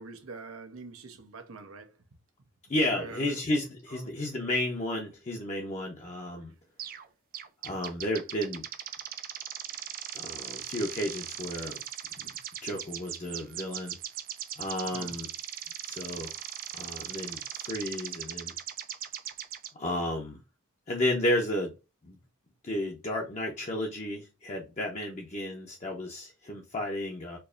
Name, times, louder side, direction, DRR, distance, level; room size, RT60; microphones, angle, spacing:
voice 1, 0.0-2.0 2.9-3.3 3.9-4.1 14.9-15.2, right 4 dB, 75° right, 0.7 m, -44 dB
voice 2, 2.7-6.5 7.6-8.6 10.1-11.8 12.2-12.3 12.6-14.0 14.6-15.3 15.8-16.3 16.7-18.5 19.7-20.4 20.9-21.7 22.0-22.2 22.6-27.4, left 1 dB, 35° left, 0.7 m, -32 dB
sound 1, 6.8-7.1 7.3-19.7, right 10 dB, 45° right, 0.4 m, -39 dB
4.5 x 2.6 x 2.5 m
head